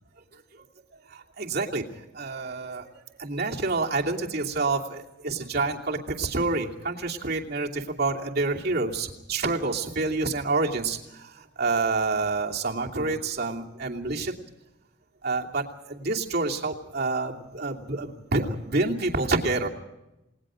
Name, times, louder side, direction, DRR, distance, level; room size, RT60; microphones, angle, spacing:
voice 1, 1.1-1.9 2.1-2.9 3.2-14.3 15.2-19.7, right 3 dB, 45° right, 0 dB, 2.7 m, -28 dB
29.0 x 19.5 x 5.1 m, 0.92 s
head